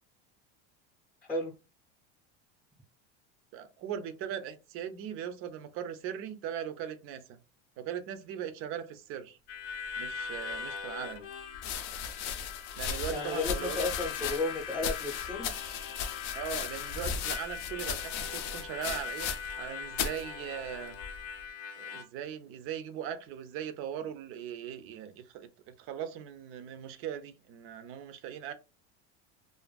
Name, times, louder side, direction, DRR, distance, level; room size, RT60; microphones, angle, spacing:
voice 1, 3.5-7.4 7.8-9.4 10.0-11.2 12.8-13.9 16.3-19.3 19.6-21.0 21.8-28.5, right 9 dB, 40° right, 0.4 m, -39 dB
Harmonica, 9.5-22.0, left 6 dB, 90° left, 0.6 m, -41 dB
sound 1, 10.5-10.6 11.5-19.7 19.9-20.2 21.0-21.4, left 7 dB, 50° left, 0.5 m, -36 dB
voice 2, 13.1-15.6, left 2 dB, 5° left, 0.6 m, -33 dB
2.5 x 2.5 x 2.2 m
supercardioid pair, 145°, 34 cm